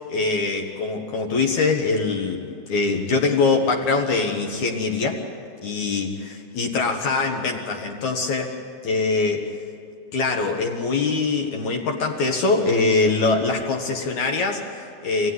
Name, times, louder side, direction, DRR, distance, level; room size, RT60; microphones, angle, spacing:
voice 1, 0.0-5.2 5.6-8.5 8.8-9.5 10.1-15.3, left 3 dB, 55° left, 2 dB, 2.4 m, -23 dB
27.5 x 18.0 x 9.7 m, 2.4 s
omnidirectional pair, 5.0 m